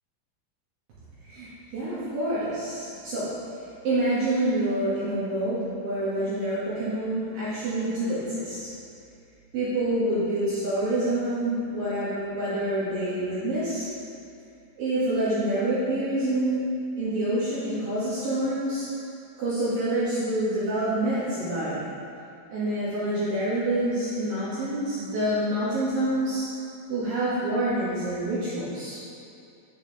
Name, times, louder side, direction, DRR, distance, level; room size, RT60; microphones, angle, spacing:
voice 1, 1.2-3.3 3.8-8.7 9.5-13.9 14.8-16.6 17.0-18.9 19.4-21.8 22.5-26.5 26.9-29.0, right 1 dB, 70° right, -11 dB, 2.3 m, -27 dB
10.5 x 5.6 x 2.9 m, 2.6 s
omnidirectional pair, 5.8 m